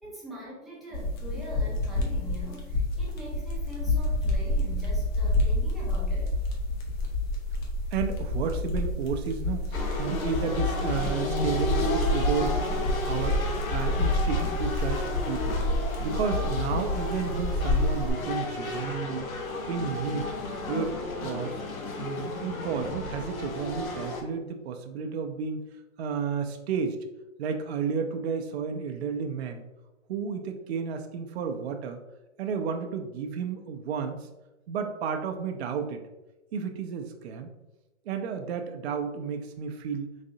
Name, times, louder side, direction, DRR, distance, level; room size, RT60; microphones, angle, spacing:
voice 1, 0.0-6.3, equal, ahead, -7 dB, 0.5 m, -43 dB
sound 1, 0.9-18.1, left 1 dB, 35° left, 0.8 m, -28 dB
voice 2, 1.3-1.8 7.9-12.6 13.0-13.4 13.7-15.6 16.0-19.3 19.7-20.3 20.7-21.6 22.0-25.6 26.0-27.0 27.4-29.6 30.1-32.0 32.4-34.2 34.7-36.0 36.5-37.5 38.1-40.1, right 6 dB, 50° right, 5 dB, 0.5 m, -32 dB
sound 2, 9.7-24.2, left 3 dB, 85° left, 0.9 m, -33 dB
4.0 x 2.6 x 2.6 m, 1.0 s
hypercardioid pair, 130°, 41 cm